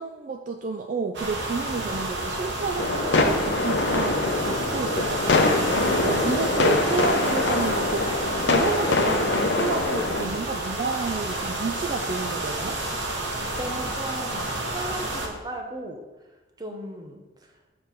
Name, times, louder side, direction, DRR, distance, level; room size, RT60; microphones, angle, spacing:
voice 1, 0.0-5.4 6.0-8.1 8.4-12.8, right 4 dB, 45° right, 3 dB, 0.4 m, -30 dB
sound 1, 1.1-15.3, right 2 dB, 85° right, 1.2 m, -30 dB
sound 2, 2.8-10.3, left 3 dB, 80° left, 0.7 m, -24 dB
voice 2, 5.7-6.4 10.2-10.4 13.1-16.0 16.6-17.5, right 1 dB, 25° right, 2 dB, 0.9 m, -37 dB
7.3 x 3.3 x 5.8 m, 1.1 s
head